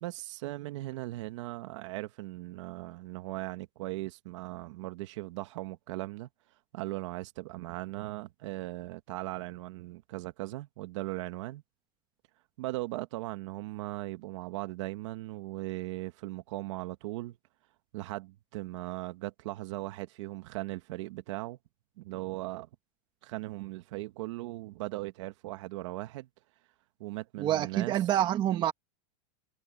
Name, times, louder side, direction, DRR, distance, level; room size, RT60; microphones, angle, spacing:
voice 1, 0.0-6.3 6.7-11.6 12.6-17.4 17.9-21.6 22.0-22.7 23.2-26.3 27.0-28.1, right 18 dB, 55° right, 1.4 m, -38 dB
voice 2, 27.4-28.7, right 12 dB, 25° right, 1.8 m, -27 dB
supercardioid pair, 165°, 18 cm